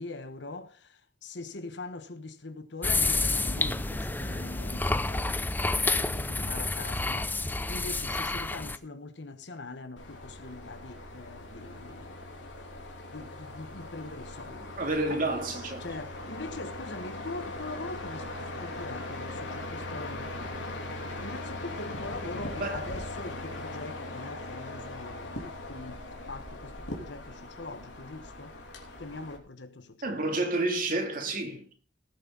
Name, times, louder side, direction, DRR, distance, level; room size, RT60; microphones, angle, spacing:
voice 1, 0.0-5.4 5.7-12.4 13.1-14.7 15.1-15.2 15.8-18.3 18.6-20.4 21.2-25.3 25.7-28.5 29.0-30.3 31.4-31.7, left 3 dB, 65° left, 1.2 m, -42 dB
sound 1, 2.8-8.8, left 3 dB, 10° left, 0.5 m, -29 dB
sound 2, 10.0-29.4, left 2 dB, 85° left, 3.1 m, -40 dB
voice 2, 14.8-15.9 22.6-23.0 30.0-31.7, right 2 dB, 45° right, 2.8 m, -30 dB
18.5 x 7.7 x 4.0 m
head